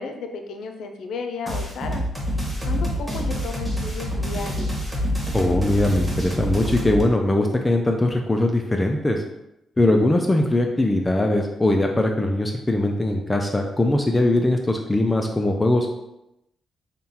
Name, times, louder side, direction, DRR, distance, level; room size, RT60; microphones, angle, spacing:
voice 1, 0.0-2.0 2.4-4.7, left 4 dB, 80° left, 5 dB, 0.5 m, -33 dB
sound 1, 1.5-7.0, equal, 10° right, 1.3 m, -26 dB
voice 2, 5.3-9.2 9.8-15.9, left 1 dB, 15° left, 3 dB, 0.4 m, -21 dB
3.7 x 2.3 x 4.2 m, 0.87 s
cardioid pair, 105°, 0 cm